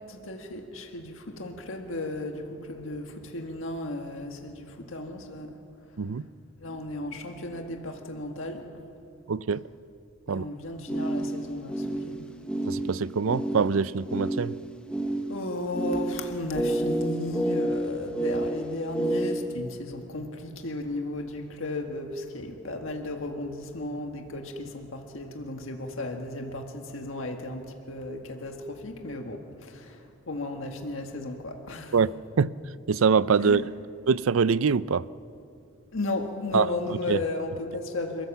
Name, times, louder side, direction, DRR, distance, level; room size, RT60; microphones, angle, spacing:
voice 1, 0.1-5.6 5.9-6.0 6.6-8.7 10.3-12.3 15.3-32.0 33.4-33.6 35.9-38.3, left 2 dB, 70° left, 1.7 m, -35 dB
voice 2, 9.3-9.6 10.3-10.4 12.7-14.6 31.9-32.6 32.9-33.7 34.1-35.0 36.5-37.2, right 5 dB, 75° right, 0.5 m, -24 dB
sound 1, 10.9-19.4, right 1 dB, 5° left, 0.9 m, -30 dB
28.0 x 15.5 x 7.2 m
head